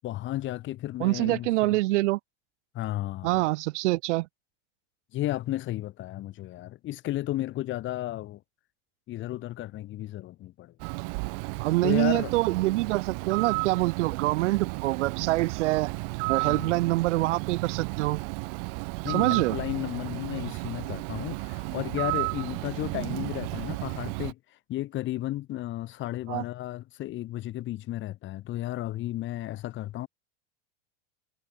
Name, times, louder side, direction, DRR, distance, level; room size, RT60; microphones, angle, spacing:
voice 1, 0.0-1.8 2.7-3.4 5.1-8.4 9.1-10.7 11.8-12.3 16.4-16.7 19.0-24.4 24.7-30.1, left 15 dB, 35° left, 3.3 m, -33 dB
voice 2, 1.0-2.2 3.2-4.3 11.6-15.9 16.3-18.2 19.1-19.6 26.3-26.4, right 19 dB, 90° right, 1.0 m, -25 dB
Bird, 10.8-24.3, right 36 dB, 55° right, 1.2 m, -33 dB
supercardioid pair, 160°, 35 cm